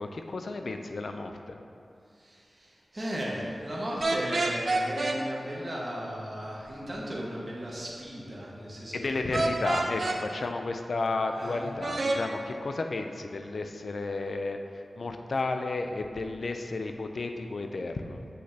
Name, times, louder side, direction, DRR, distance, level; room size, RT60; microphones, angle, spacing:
voice 1, 0.0-1.6 8.9-18.2, left 3 dB, 70° left, 5 dB, 0.5 m, -32 dB
voice 2, 2.1-9.5 11.3-11.7, equal, 35° right, -5 dB, 1.5 m, -36 dB
sound 1, 4.0-5.2 9.3-10.2 11.8-12.2, right 2 dB, 60° right, 0.6 m, -27 dB
7.9 x 6.2 x 2.8 m, 2.5 s
cardioid pair, 50°, 0 cm